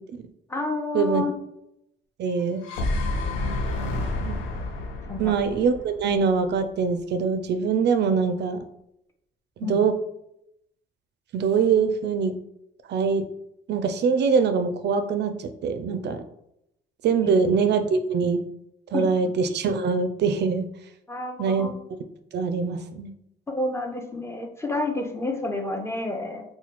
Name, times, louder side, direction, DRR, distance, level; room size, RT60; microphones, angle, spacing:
voice 1, 0.5-1.3 5.1-5.3 9.6-9.8 18.9-19.1 21.1-21.7 23.5-26.4, left 2 dB, 15° left, 4 dB, 0.6 m, -29 dB
voice 2, 2.2-2.6 4.3-4.4 5.2-8.6 9.6-9.9 11.3-12.3 12.9-13.2 13.7-16.2 17.0-18.4 18.9-20.7 21.4-21.7 22.3-23.1, right 5 dB, 60° right, 9 dB, 0.4 m, -23 dB
sound 1, 2.4-6.6, left 2 dB, 85° left, 0.6 m, -29 dB
2.9 x 2.2 x 4.1 m, 0.78 s
cardioid pair, 90°, 20 cm